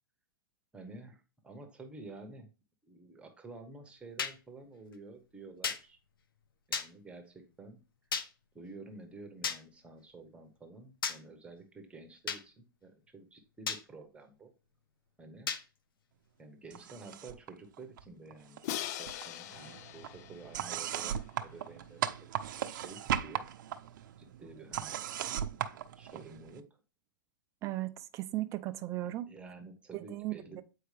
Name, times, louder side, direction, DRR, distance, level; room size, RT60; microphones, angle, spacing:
voice 1, 0.7-2.5 2.8-6.0 6.7-7.8 8.5-14.5 15.2-15.5 16.4-22.2 22.5-23.5 24.2-25.0 26.0-26.7 29.0-30.6, right 3 dB, 10° right, 1.1 m, -51 dB
sound 1, 4.2-4.3 5.6-5.8 6.7-6.9 8.1-8.3 9.4-9.6 11.0-11.2 12.3-12.4 13.7-13.8 15.5-15.6, left 6 dB, 85° left, 0.7 m, -33 dB
sound 2, 16.7-17.5 17.8-18.8 19.1-26.6, right 10 dB, 65° right, 0.7 m, -38 dB
Crash cymbal, 18.6-21.6, left 12 dB, 50° left, 0.4 m, -42 dB
voice 2, 27.6-29.3 29.9-30.6, right 16 dB, 25° right, 0.5 m, -37 dB
7.9 x 4.6 x 3.3 m
hypercardioid pair, 135°, 11 cm